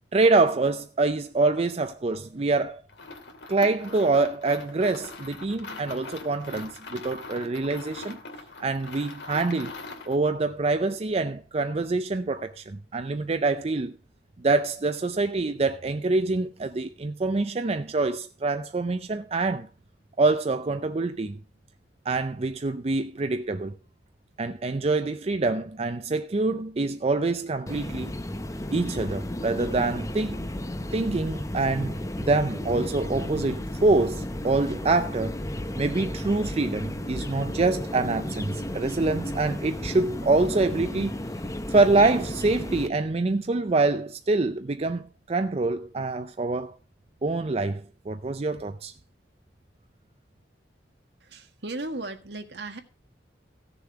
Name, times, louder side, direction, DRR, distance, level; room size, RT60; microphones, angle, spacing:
voice 1, 0.1-2.8 3.5-8.2 8.6-9.8 10.1-13.9 14.4-19.7 20.2-21.4 22.1-23.7 24.4-28.1 28.7-30.4 30.9-35.3 35.7-41.1 41.7-46.8 47.2-48.9, right 3 dB, 35° right, 0.5 m, -25 dB
sound 1, 2.9-10.2, left 3 dB, 75° left, 2.2 m, -42 dB
sound 2, 27.7-42.9, left 1 dB, 20° left, 0.8 m, -33 dB
voice 2, 51.2-52.8, right 2 dB, 65° right, 1.6 m, -36 dB
15.5 x 7.0 x 4.7 m
head